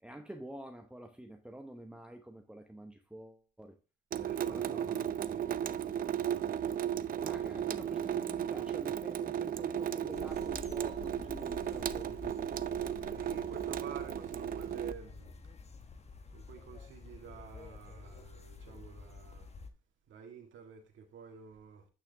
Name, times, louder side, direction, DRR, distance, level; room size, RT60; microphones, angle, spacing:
voice 1, 0.0-3.8 4.2-5.3 7.2-13.5, right 1 dB, 5° right, 0.9 m, -49 dB
Water tap faucet / Sink (filling or washing) / Drip, 4.1-14.9, right 10 dB, 45° right, 0.4 m, -35 dB
voice 2, 4.2-7.7 13.1-15.3 16.3-19.5 20.1-21.8, right 6 dB, 75° right, 1.9 m, -51 dB
sound 1, 10.1-19.7, left 4 dB, 35° left, 1.1 m, -49 dB
8.9 x 6.4 x 3.4 m
cardioid pair, 90°, 20 cm